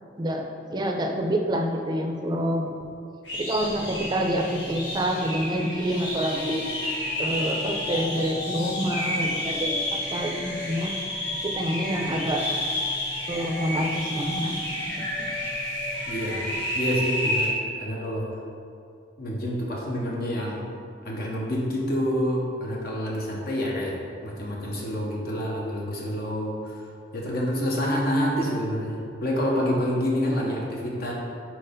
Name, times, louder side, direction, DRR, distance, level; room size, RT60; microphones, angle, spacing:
voice 1, 0.2-2.7 3.4-6.6 7.2-10.9 11.4-12.4 13.3-14.6 14.9-15.3, equal, 25° right, 2 dB, 0.5 m, -27 dB
sound 1, 3.2-17.5, left 1 dB, 70° left, 1.3 m, -30 dB
voice 2, 16.1-17.5 17.8-18.3 19.2-20.6 21.0-26.8 27.1-31.1, equal, 55° left, -3 dB, 0.8 m, -27 dB
4.6 x 4.5 x 5.0 m, 2.4 s
head